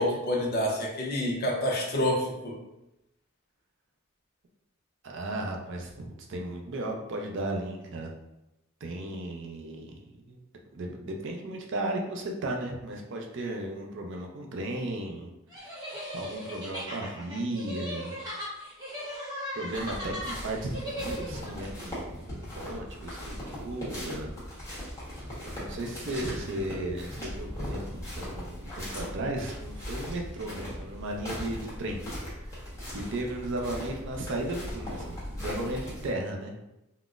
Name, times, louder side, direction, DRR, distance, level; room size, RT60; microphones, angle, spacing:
voice 1, 0.0-2.6, left 1 dB, 50° left, -2 dB, 0.7 m, -28 dB
voice 2, 5.0-8.1 8.8-10.0 10.3-10.4 10.7-15.3 15.6-15.8 16.1-18.1 19.5-24.3 25.5-32.0 32.9-36.5, right 1 dB, 60° right, 1 dB, 0.5 m, -35 dB
sound 1, 15.5-21.5, equal, 20° right, 0.9 m, -38 dB
sound 2, 19.7-36.1, equal, 15° left, 1.1 m, -39 dB
3.8 x 2.0 x 2.4 m, 0.91 s
head